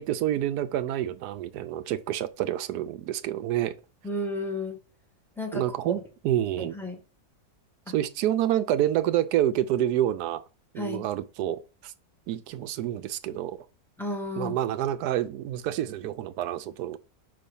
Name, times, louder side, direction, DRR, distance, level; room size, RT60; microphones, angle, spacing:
voice 1, 0.0-3.7 5.5-6.7 7.9-10.4 10.7-11.9 12.3-13.6 14.4-17.0, right 12 dB, 85° right, 1.1 m, -28 dB
voice 2, 4.0-4.8 5.4-5.6 6.6-7.0 10.8-11.0 14.0-14.6, left 1 dB, ahead, 1.6 m, -32 dB
5.6 x 4.3 x 5.4 m
omnidirectional pair, 1.6 m